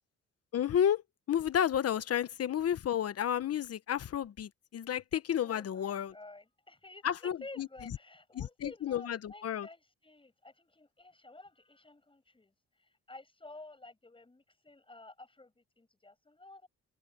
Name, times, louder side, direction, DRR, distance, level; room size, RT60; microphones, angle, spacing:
voice 1, 0.5-1.0 1.3-6.1 7.0-7.7 8.3-9.7, left 9 dB, 55° left, 1.0 m, -31 dB
voice 2, 5.4-16.7, left 2 dB, 15° left, 6.0 m, -52 dB
cardioid pair, 90°, 30 cm